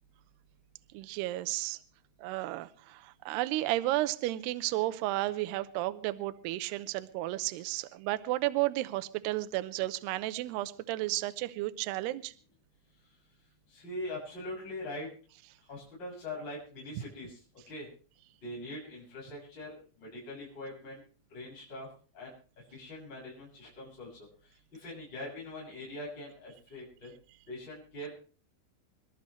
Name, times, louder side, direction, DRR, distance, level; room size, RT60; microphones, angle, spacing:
voice 1, 0.9-1.8 2.2-12.3, right 17 dB, 85° right, 12 dB, 2.3 m, -33 dB
voice 2, 13.7-15.1 15.7-17.4 17.7-17.9 18.4-21.0 21.3-21.9 22.1-22.3 22.7-24.3 24.7-27.1 27.5-28.1, left 1 dB, 20° left, -6 dB, 7.4 m, -42 dB
27.0 x 12.0 x 3.2 m, 0.39 s
omnidirectional pair, 5.9 m